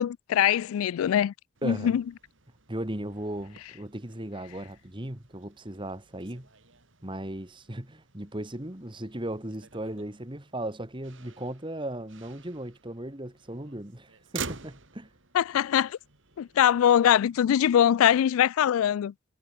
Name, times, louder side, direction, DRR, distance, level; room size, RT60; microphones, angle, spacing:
voice 1, 0.0-1.3 1.6-2.0 15.3-16.0 16.4-19.1, left 10 dB, 80° left, 0.3 m, -22 dB
Motor vehicle (road), 1.5-17.4, right 5 dB, 60° right, 3.0 m, -48 dB
voice 2, 1.6-2.0 2.7-6.5 7.0-15.1, right 1 dB, 25° right, 1.9 m, -37 dB
head